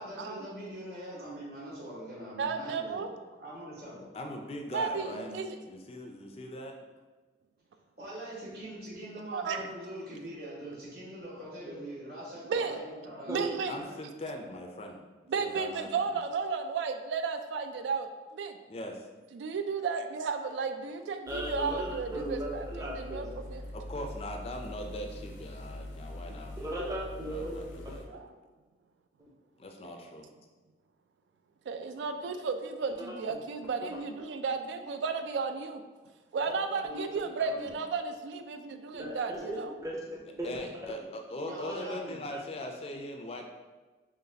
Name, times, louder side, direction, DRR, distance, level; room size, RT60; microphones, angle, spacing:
voice 1, 0.0-3.0 3.4-4.1 5.1-5.5 8.0-13.5 41.4-42.2, right 1 dB, 55° right, -8 dB, 1.3 m, -43 dB
voice 2, 2.4-3.1 4.7-5.5 9.3-9.6 12.5-12.8 13.3-13.8 15.3-18.6 19.3-23.6 28.0-28.3 29.8-29.9 31.7-35.8 36.3-39.7, right 5 dB, 80° right, 7 dB, 0.3 m, -34 dB
voice 3, 4.1-5.3 5.7-6.7 13.7-15.0 15.4-16.2 18.7-19.1 23.7-26.6 27.3-28.0 29.6-30.3 40.4-43.5, left 1 dB, 35° left, 3 dB, 0.4 m, -40 dB
sound 1, 21.3-28.1, left 1 dB, 90° left, 0.5 m, -43 dB
voice 4, 21.3-23.4 26.6-27.6 27.8-27.9 29.2-29.3 33.0-33.2 33.8-33.9 36.9-37.2 37.4-37.6 38.9-40.5 40.8-40.9 41.6-41.8, right 1 dB, 15° right, -3 dB, 0.6 m, -37 dB
4.0 x 3.0 x 2.7 m, 1.3 s
head